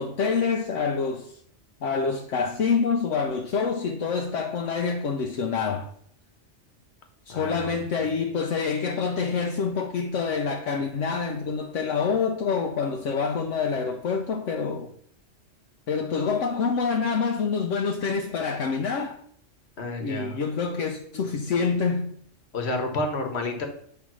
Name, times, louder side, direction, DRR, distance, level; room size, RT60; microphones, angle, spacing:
voice 1, 0.0-1.3 1.8-5.9 7.3-14.9 15.9-19.2 20.0-22.1, left 5 dB, 75° left, 1.1 m, -26 dB
voice 2, 7.3-8.2 19.8-20.4 22.5-23.7, left 2 dB, 60° left, 1.4 m, -30 dB
8.5 x 3.5 x 6.1 m
omnidirectional pair, 1.3 m